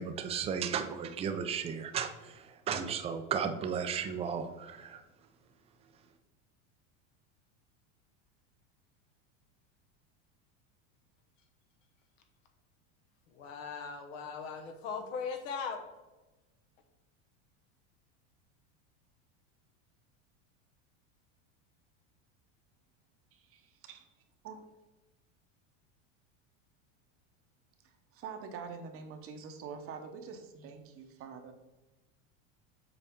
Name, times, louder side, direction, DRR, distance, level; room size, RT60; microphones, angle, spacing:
voice 1, 0.0-5.0, right 7 dB, 15° right, 8 dB, 0.4 m, -35 dB
voice 2, 13.3-15.8, left 5 dB, 80° left, 5 dB, 1.2 m, -39 dB
voice 3, 23.3-24.1 24.4-24.7 27.8-31.5, right 6 dB, 35° right, 6 dB, 0.8 m, -46 dB
7.0 x 4.3 x 3.6 m, 1.1 s
supercardioid pair, 140°, 38 cm